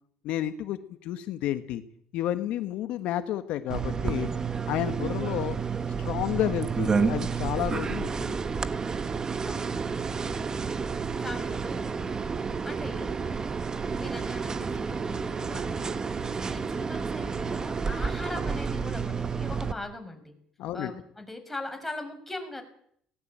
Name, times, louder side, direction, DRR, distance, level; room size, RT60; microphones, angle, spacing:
voice 1, 0.2-1.8 2.1-4.3 4.7-5.6 6.0-8.3 20.6-20.9, left 12 dB, 75° left, 10 dB, 1.4 m, -31 dB
sound 1, 3.7-19.7, right 5 dB, 30° right, 1.3 m, -30 dB
voice 2, 9.4-10.0 10.4-10.7 11.1-12.3 12.6-13.2 13.9-20.3 20.7-22.6, left 2 dB, 10° left, 4 dB, 5.4 m, -40 dB
17.5 x 17.5 x 8.7 m, 0.69 s
supercardioid pair, 75°, 2 cm